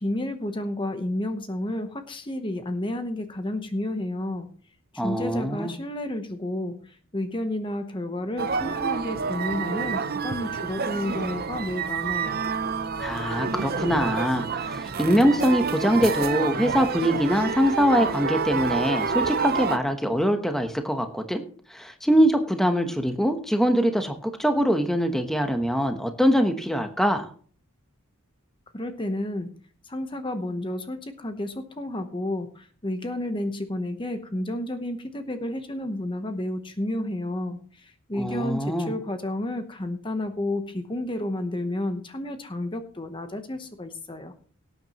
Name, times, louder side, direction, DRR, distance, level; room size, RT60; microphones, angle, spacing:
voice 1, 0.0-4.5 5.0-12.4 28.7-29.5 29.9-44.3, left 1 dB, 25° left, 7 dB, 0.9 m, -31 dB
voice 2, 5.0-5.7 13.0-21.4 21.7-27.3 38.1-38.9, equal, ahead, 5 dB, 1.0 m, -23 dB
sound 1, 8.4-19.8, right 5 dB, 45° right, 0.7 m, -28 dB
18.0 x 9.1 x 3.0 m, 0.44 s
head